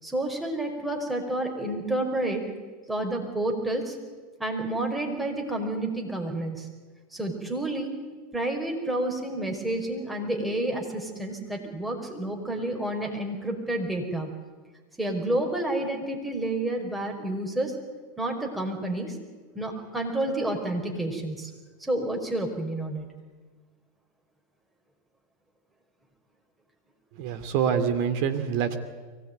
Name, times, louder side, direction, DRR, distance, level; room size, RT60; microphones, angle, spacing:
voice 1, 0.0-2.5 2.9-4.0 4.4-6.7 7.1-7.9 8.3-14.3 15.0-17.8 18.2-19.2 19.5-21.5 21.8-23.1, right 1 dB, 10° right, 2 dB, 5.3 m, -29 dB
voice 2, 27.2-28.8, right 7 dB, 55° right, 8 dB, 2.6 m, -26 dB
23.5 x 18.0 x 9.5 m, 1.4 s
hypercardioid pair, 90°, 0 cm